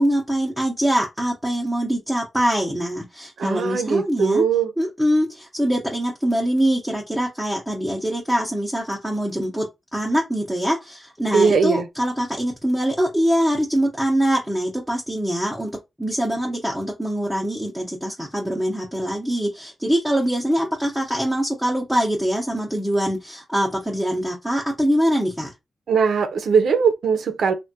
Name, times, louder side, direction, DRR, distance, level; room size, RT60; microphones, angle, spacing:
voice 1, 0.0-4.4 4.8-9.7 9.9-15.7 16.0-25.5, equal, ahead, 0.7 m, -23 dB
voice 2, 3.4-4.7 11.3-11.9 25.9-27.5, right 5 dB, 85° right, 0.5 m, -20 dB
3.4 x 2.2 x 2.7 m
wide cardioid pair, 115°, 0 cm